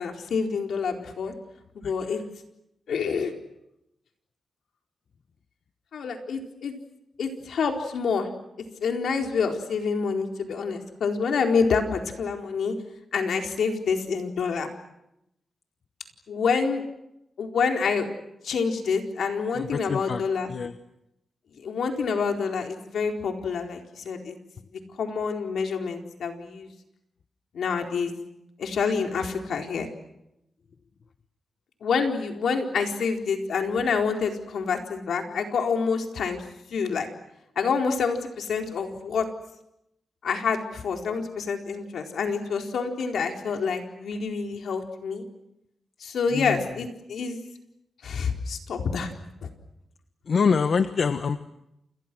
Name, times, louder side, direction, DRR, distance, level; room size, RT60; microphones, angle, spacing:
voice 1, 0.0-1.3 1.7-2.2 2.9-3.3 5.9-6.7 7.2-8.3 8.8-12.7 13.1-14.7 16.3-16.8 17.4-18.1 18.4-20.5 21.6-24.4 24.7-26.7 27.5-28.1 28.6-29.9 31.8-36.4 36.7-37.1 37.6-39.3 40.2-45.3 46.0-47.4 48.0-49.1, left 5 dB, 75° left, 3 dB, 4.3 m, -27 dB
voice 2, 1.8-2.2 19.5-20.2 20.5-20.7 46.3-46.9 50.3-51.4, left 5 dB, 55° left, 9 dB, 1.2 m, -26 dB
29.5 x 29.0 x 6.2 m, 0.84 s
wide cardioid pair, 140°, 0 cm